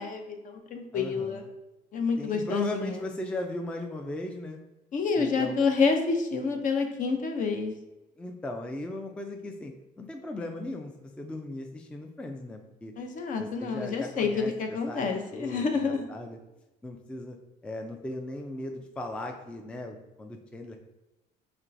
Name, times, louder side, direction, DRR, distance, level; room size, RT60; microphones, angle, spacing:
voice 1, 0.0-1.4 1.9-3.1 4.9-7.7 13.0-16.1, left 5 dB, 50° left, 4 dB, 0.6 m, -28 dB
voice 2, 0.9-1.5 2.2-4.6 5.2-5.6 8.2-12.9 13.4-16.4 16.8-17.4 17.6-20.8, left 1 dB, 5° left, 3 dB, 0.3 m, -38 dB
4.4 x 3.0 x 2.5 m, 1.0 s
cardioid pair, 110°, 17 cm